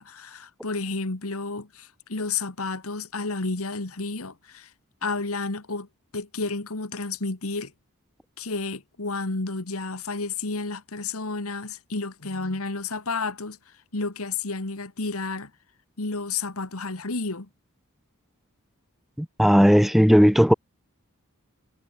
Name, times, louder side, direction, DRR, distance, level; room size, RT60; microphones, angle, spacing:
voice 1, 0.0-4.7 5.0-5.9 6.1-7.7 8.4-13.6 13.9-15.5 16.0-17.5, left 3 dB, 70° left, 1.8 m, -31 dB
voice 2, 19.2-20.5, equal, ahead, 0.6 m, -16 dB
head